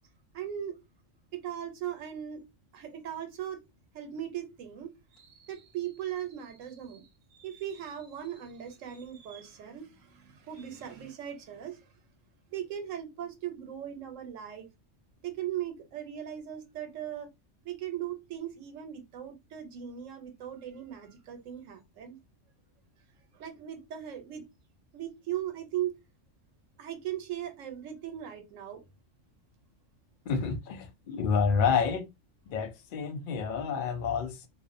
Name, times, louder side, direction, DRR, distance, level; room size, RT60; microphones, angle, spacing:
voice 1, 0.3-0.8 1.3-2.4 2.7-3.6 3.9-11.9 12.5-14.7 15.2-17.3 17.6-22.2 23.3-24.4 24.9-26.0 26.8-28.8 33.6-33.7, right 10 dB, 85° right, 1.0 m, -38 dB
voice 2, 30.3-32.1 32.5-34.5, left 6 dB, 65° left, 0.5 m, -29 dB
2.5 x 2.1 x 2.4 m
omnidirectional pair, 1.3 m